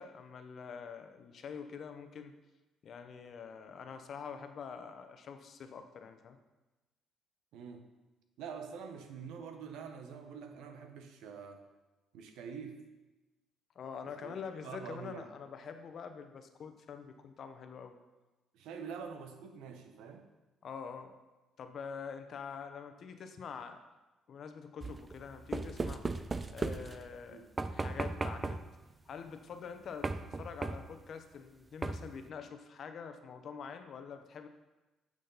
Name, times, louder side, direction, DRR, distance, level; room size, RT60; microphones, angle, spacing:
voice 1, 0.0-2.3 2.8-6.4 13.7-18.0 20.6-21.1 21.6-23.8 24.3-26.1 26.5-28.6 29.1-34.5, left 6 dB, 55° left, 7 dB, 0.8 m, -45 dB
voice 2, 7.5-7.8 8.4-11.6 12.1-12.8 14.2-14.3 14.6-15.3 18.5-20.3 27.3-27.5, right 6 dB, 85° right, 6 dB, 1.0 m, -46 dB
sound 1, 24.8-27.2 27.6-28.8 30.0-31.0 31.8-32.3, right 3 dB, 25° right, 0.4 m, -37 dB
10.5 x 6.4 x 4.1 m, 1.1 s
cardioid pair, 105°, 0 cm